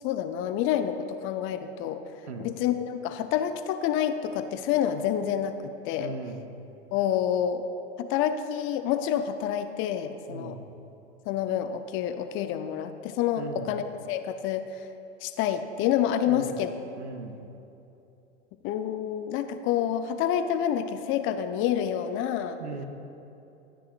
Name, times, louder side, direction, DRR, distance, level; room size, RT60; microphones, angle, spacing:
voice 1, 0.0-2.0 2.4-6.1 6.9-7.6 8.0-10.6 11.3-14.6 15.2-16.7 18.6-22.6, left 10 dB, 40° left, 9 dB, 0.6 m, -28 dB
voice 2, 6.0-6.5 10.3-10.7 13.4-13.7 16.3-16.5 17.0-17.5 22.6-22.9, right 3 dB, 85° right, 6 dB, 0.9 m, -38 dB
12.5 x 10.0 x 2.5 m, 2.9 s
hypercardioid pair, 100°, 33 cm